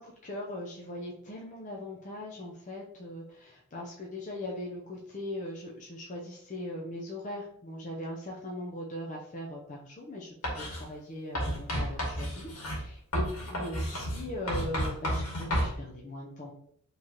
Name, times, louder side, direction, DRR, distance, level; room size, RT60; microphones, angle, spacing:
voice 1, 0.0-16.5, left 1 dB, 35° left, -2 dB, 0.6 m, -40 dB
Writing, 10.4-10.8 11.3-15.7, equal, 80° left, 1.6 m, -32 dB
4.7 x 3.1 x 2.9 m, 0.65 s
head